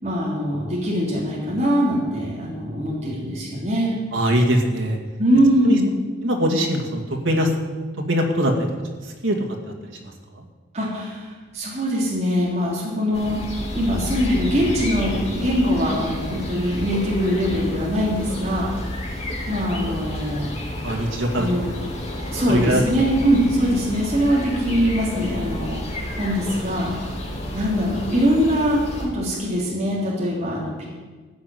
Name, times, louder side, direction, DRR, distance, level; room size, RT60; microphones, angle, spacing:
voice 1, 0.0-4.0 5.2-5.9 10.7-13.4 13.7-19.0 19.5-20.5 21.4-21.7 22.3-26.9 27.5-30.9, equal, 35° right, -4 dB, 3.5 m, -22 dB
voice 2, 4.1-5.0 5.7-5.8 6.2-7.5 8.1-8.5 9.2-9.4 20.8-21.5 22.5-22.8, equal, 90° right, 1 dB, 2.2 m, -21 dB
sound 1, 13.1-29.1, left 1 dB, 35° left, 2.8 m, -31 dB
15.0 x 6.0 x 9.3 m, 1.4 s
head